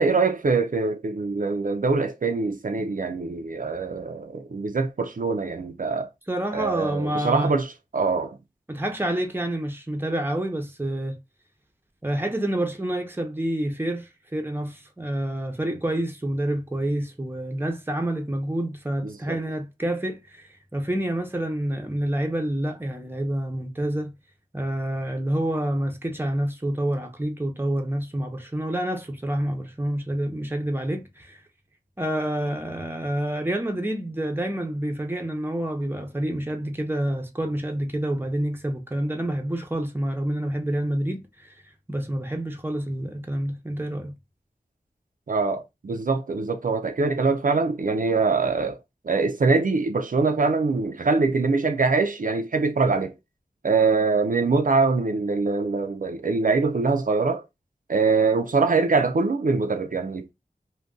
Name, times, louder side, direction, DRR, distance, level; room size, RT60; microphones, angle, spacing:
voice 1, 0.0-6.1 6.5-8.4 19.0-19.4 45.3-48.8 49.0-53.1 53.6-57.4 57.9-60.3, right 4 dB, 65° right, 0.4 m, -23 dB
voice 2, 6.3-7.5 8.7-11.2 12.0-24.1 24.5-31.4 32.0-41.6 41.9-44.1, right 1 dB, 15° right, 0.7 m, -28 dB
2.5 x 2.2 x 3.5 m
wide cardioid pair, 60°, 15 cm